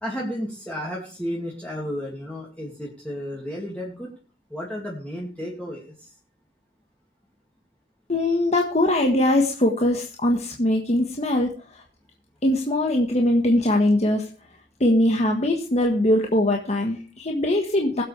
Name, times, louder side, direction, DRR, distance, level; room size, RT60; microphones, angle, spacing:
voice 1, 0.0-4.1 4.5-6.1, equal, 10° left, -3 dB, 2.3 m, -32 dB
voice 2, 8.1-11.8 12.4-14.3 14.8-18.0, left 1 dB, 40° left, 2 dB, 1.5 m, -21 dB
21.5 x 8.0 x 3.4 m, 0.39 s
head